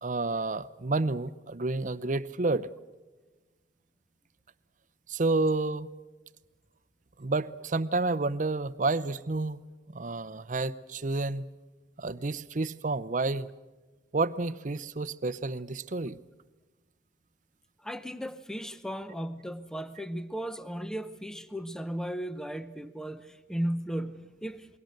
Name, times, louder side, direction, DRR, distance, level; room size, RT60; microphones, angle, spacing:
voice 1, 0.0-2.7 5.1-5.9 7.2-9.6 9.9-11.5 12.0-13.5 14.1-16.2, right 3 dB, 40° right, 16 dB, 0.7 m, -30 dB
voice 2, 17.8-24.7, equal, 5° left, 11 dB, 0.7 m, -36 dB
28.0 x 22.0 x 6.6 m, 1.2 s
head